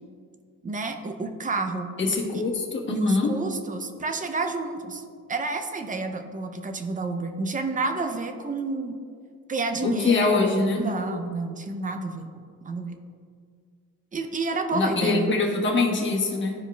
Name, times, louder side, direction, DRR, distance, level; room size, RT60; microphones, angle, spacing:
voice 1, 0.6-1.9 2.3-2.4 2.9-5.0 5.3-9.0 9.5-12.3 12.6-13.0 14.1-15.3, right 3 dB, 20° right, 6 dB, 0.5 m, -30 dB
voice 2, 2.0-3.3 9.8-10.8 14.7-16.5, left 3 dB, 30° left, -1 dB, 1.3 m, -23 dB
13.0 x 4.8 x 2.3 m, 2.1 s
cardioid pair, 120°, 37 cm